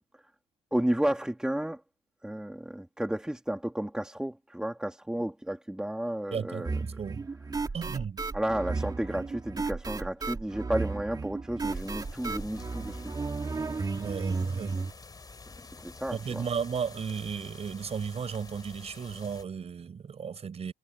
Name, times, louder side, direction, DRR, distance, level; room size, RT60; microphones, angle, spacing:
voice 1, 0.7-1.8 2.2-6.7 8.3-13.0 15.8-16.4, right 1 dB, 5° right, 2.5 m, -32 dB
voice 2, 6.3-7.3 7.7-8.2 13.9-14.8 16.1-20.7, right 6 dB, 40° right, 4.7 m, -35 dB
sound 1, 6.7-14.9, right 4 dB, 20° right, 2.3 m, -34 dB
sound 2, 11.6-19.4, left 4 dB, 25° left, 2.9 m, -48 dB
cardioid pair, 110°, 17 cm